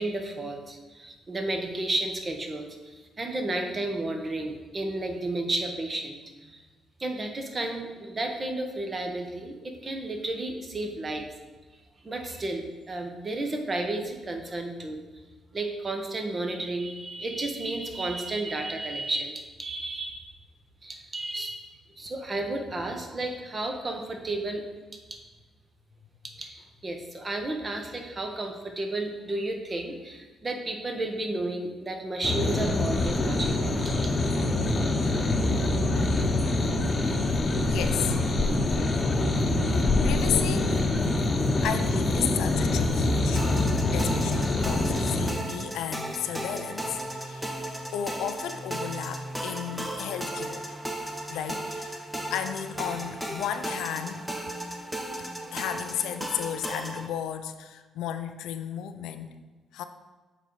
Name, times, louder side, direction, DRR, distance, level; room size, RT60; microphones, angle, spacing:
voice 1, 0.0-6.6 7.0-11.3 12.0-15.0 15.5-20.3 20.8-21.7 22.0-24.6 25.1-25.2 26.4-34.1, right 2 dB, 30° right, 4 dB, 1.0 m, -32 dB
sound 1, 32.2-45.3, left 2 dB, 30° left, 0.9 m, -25 dB
voice 2, 37.7-38.2 38.7-38.9 40.0-40.8 41.6-43.6 43.9-47.4 47.9-50.7 51.3-52.0 52.3-54.3 55.2-59.3 59.7-59.8, left 10 dB, 90° left, 9 dB, 0.4 m, -33 dB
sound 2, 43.4-57.1, right 1 dB, 5° right, 0.8 m, -35 dB
7.3 x 4.0 x 4.7 m, 1.3 s
cardioid pair, 90°, 0 cm